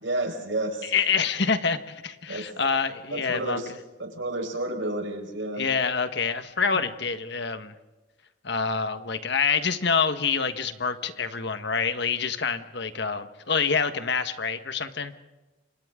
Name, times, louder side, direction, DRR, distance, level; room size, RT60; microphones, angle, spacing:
voice 1, 0.0-0.9 2.3-2.5 3.1-3.7 4.0-5.6, right 2 dB, 75° right, 4 dB, 4.8 m, -30 dB
voice 2, 0.9-3.6 5.6-7.7 8.4-15.1, left 5 dB, 60° left, 9 dB, 1.4 m, -26 dB
30.0 x 26.0 x 3.8 m, 1.1 s
head